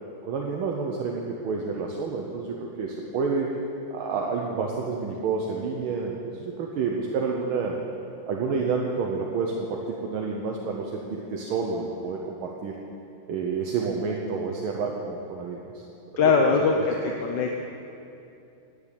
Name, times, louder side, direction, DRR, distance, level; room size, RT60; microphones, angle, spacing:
voice 1, 0.2-3.5 3.9-7.8 8.3-12.8 13.3-15.8 16.2-16.4 16.7-16.9 17.2-17.4, right 4 dB, 75° right, 0 dB, 1.7 m, -29 dB
voice 2, 16.2-16.7 17.2-17.6, left 5 dB, 65° left, 2 dB, 1.3 m, -20 dB
10.5 x 10.0 x 8.3 m, 2.8 s
omnidirectional pair, 2.4 m